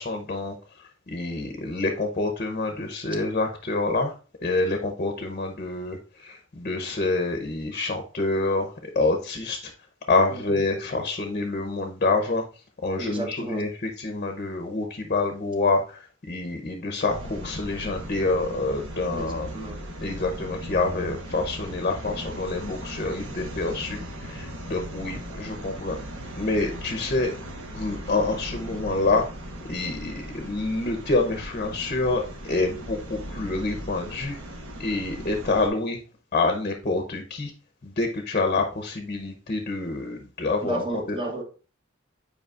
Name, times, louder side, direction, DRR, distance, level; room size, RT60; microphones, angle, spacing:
voice 1, 0.0-4.1 4.4-9.7 10.1-12.5 12.8-19.5 20.0-26.0 26.3-27.3 27.7-29.3 29.6-34.4 34.8-36.0 36.3-37.5 37.8-41.2, left 3 dB, 40° left, 5 dB, 0.7 m, -27 dB
voice 2, 13.0-13.6 19.1-19.8 40.6-41.4, right 2 dB, 25° right, 2 dB, 1.0 m, -32 dB
sound 1, 17.1-35.7, equal, 65° right, 1.2 m, -38 dB
7.9 x 4.8 x 2.4 m, 0.37 s
head